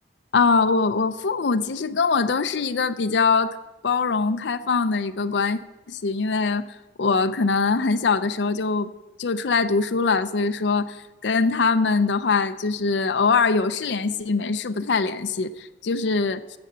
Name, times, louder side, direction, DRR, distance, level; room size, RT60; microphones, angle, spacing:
voice 1, 0.3-3.6 3.8-5.6 5.9-8.9 9.2-16.6, left 4 dB, 80° left, 11 dB, 0.6 m, -23 dB
15.0 x 6.9 x 6.7 m, 1.2 s
head